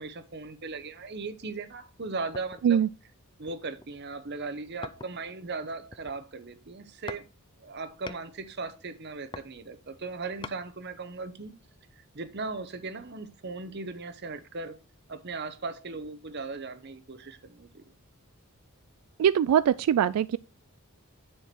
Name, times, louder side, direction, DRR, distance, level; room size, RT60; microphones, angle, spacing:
voice 1, 0.0-2.8 3.4-7.3 7.6-11.5 12.0-14.8 15.1-17.8, right 3 dB, 50° right, 0.9 m, -38 dB
sound 1, 2.3-2.8 3.4-4.0 4.8-5.4 5.7-6.4 7.1-7.3 7.6-8.3 9.0-10.6 11.1-11.2, left 4 dB, 20° left, 0.4 m, -44 dB
voice 2, 19.2-20.4, right 9 dB, 90° right, 0.3 m, -22 dB
10.0 x 4.6 x 4.5 m
head